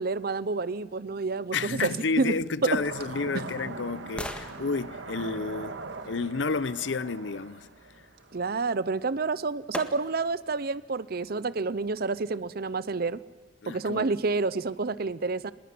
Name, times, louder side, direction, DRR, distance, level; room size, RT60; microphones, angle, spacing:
voice 1, 0.0-1.9 2.2-2.3 2.6-2.8 3.3-3.4 8.3-13.2 13.7-15.5, right 3 dB, 55° right, 0.7 m, -29 dB
voice 2, 1.5-7.7 13.6-14.1, left 4 dB, 85° left, 0.7 m, -31 dB
sound 1, 2.7-8.7, right 3 dB, 90° right, 1.7 m, -41 dB
sound 2, 2.8-6.7 8.8-8.9 9.7-10.4 10.9-11.0, left 1 dB, 5° left, 1.6 m, -43 dB
24.5 x 20.5 x 9.5 m
head